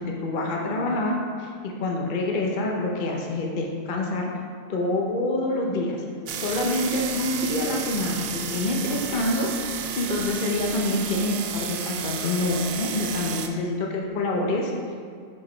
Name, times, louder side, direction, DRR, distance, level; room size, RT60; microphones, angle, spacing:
voice 1, 0.0-4.3 4.7-6.0 6.4-9.5 10.0-14.7, left 2 dB, 45° left, 0 dB, 0.7 m, -26 dB
sound 1, 6.3-13.5, right 7 dB, 65° right, 0.6 m, -32 dB
6.7 x 4.8 x 4.3 m, 2.2 s
omnidirectional pair, 1.5 m